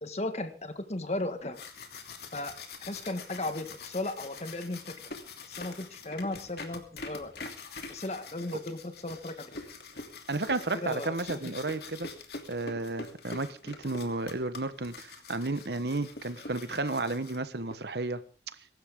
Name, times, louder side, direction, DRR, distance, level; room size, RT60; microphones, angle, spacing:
voice 1, 0.0-1.6 2.3-2.5 2.9-4.9 5.5-7.3 7.9-9.6 10.7-11.1, left 2 dB, 40° left, 8 dB, 1.7 m, -35 dB
sound 1, 1.3-17.7, left 3 dB, 65° left, 2.8 m, -45 dB
voice 2, 10.3-12.1 12.5-18.2, right 2 dB, 70° right, 12 dB, 1.2 m, -32 dB
23.0 x 12.5 x 3.7 m, 0.37 s
head